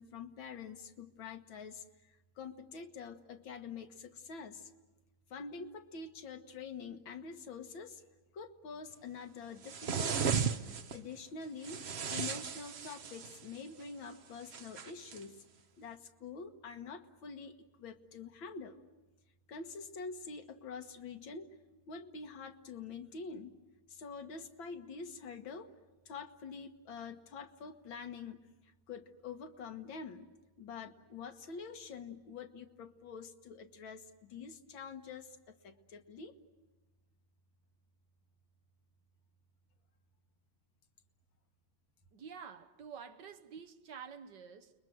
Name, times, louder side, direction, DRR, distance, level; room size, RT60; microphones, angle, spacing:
voice 1, 0.0-4.7 5.3-8.0 8.3-10.5 10.9-15.4 15.8-18.8 19.5-21.5 21.9-23.6 23.9-25.7 26.1-28.4 28.9-30.3 30.6-35.4 35.6-36.4, left 5 dB, 70° left, 2.2 m, -46 dB
sound 1, 9.6-11.0 11.6-13.5 14.5-15.2, right 6 dB, 45° right, 0.9 m, -35 dB
voice 2, 42.1-44.7, right 6 dB, 60° right, 1.7 m, -49 dB
30.0 x 22.0 x 7.9 m
omnidirectional pair, 2.2 m